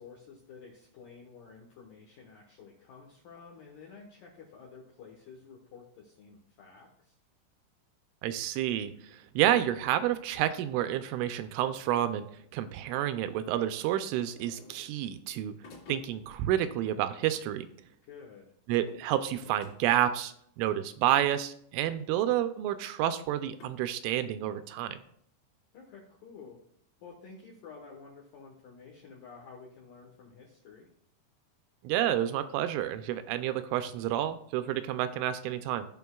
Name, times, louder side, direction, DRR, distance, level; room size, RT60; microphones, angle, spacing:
voice 1, 0.0-7.2 18.1-18.5 25.7-26.6 27.0-30.9, left 5 dB, 80° left, -1 dB, 2.0 m, -51 dB
voice 2, 8.2-12.3 12.5-15.6 15.9-17.7 18.7-25.0 31.8-35.9, right 12 dB, 85° right, 10 dB, 2.9 m, -29 dB
sound 1, 14.2-15.0 15.6-16.4 18.7-20.1 21.1-21.2 22.0-22.1 23.6-23.7, left 3 dB, 55° left, 3.5 m, -53 dB
16.0 x 5.9 x 2.3 m, 0.69 s
omnidirectional pair, 5.6 m